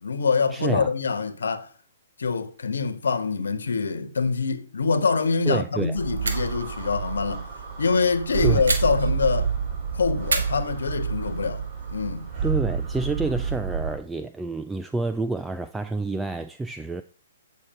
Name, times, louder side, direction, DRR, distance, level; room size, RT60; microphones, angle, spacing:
voice 1, 0.0-1.7 2.2-7.5 7.8-9.5 9.9-11.6 11.9-12.3, left 4 dB, 80° left, 1.3 m, -25 dB
voice 2, 0.5-0.9 5.5-6.0 8.4-8.6 12.4-17.0, right 3 dB, 5° right, 0.4 m, -28 dB
sound 1, 4.9-5.3 5.6-5.7 6.2-6.6 8.7-9.5 10.2-11.4, right 3 dB, 85° right, 1.7 m, -31 dB
sound 2, 6.0-14.0, right 6 dB, 35° right, 2.5 m, -29 dB
9.0 x 6.4 x 4.4 m
hypercardioid pair, 135°, 0 cm